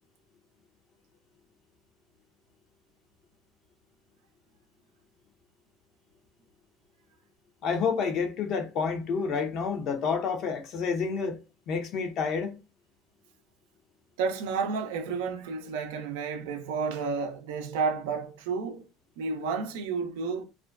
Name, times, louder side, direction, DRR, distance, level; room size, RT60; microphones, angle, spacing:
voice 1, 7.6-11.4 11.7-12.6, left 5 dB, 55° left, 0.7 m, -29 dB
voice 2, 14.2-18.9 19.2-20.4, right 5 dB, 85° right, 0.5 m, -31 dB
2.4 x 2.1 x 2.4 m
supercardioid pair, 100°, 0 cm